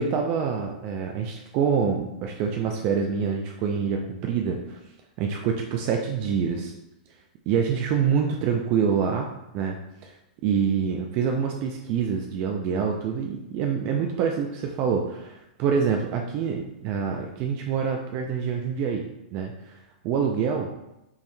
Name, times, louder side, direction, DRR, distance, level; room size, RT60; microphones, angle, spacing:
voice 1, 0.0-4.8 5.2-6.7 7.5-9.8 10.0-10.1 10.4-19.1 19.3-19.8 20.0-20.7, right 6 dB, 40° right, 2 dB, 0.4 m, -26 dB
5.3 x 3.0 x 2.2 m, 0.90 s
hypercardioid pair, 125°, 5 cm